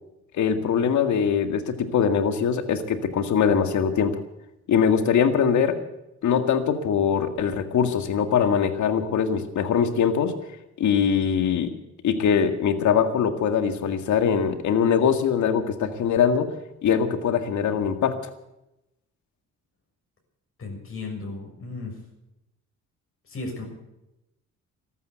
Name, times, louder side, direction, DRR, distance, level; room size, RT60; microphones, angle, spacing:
voice 1, 0.3-4.2 4.7-5.8 6.2-10.3 10.8-11.7 12.0-16.5 16.8-18.2, left 7 dB, 70° left, 9 dB, 2.0 m, -22 dB
voice 2, 20.6-22.0 23.3-23.6, left 3 dB, 45° left, 1 dB, 6.6 m, -35 dB
14.0 x 12.5 x 8.1 m, 0.89 s
cardioid pair, 90°, 30 cm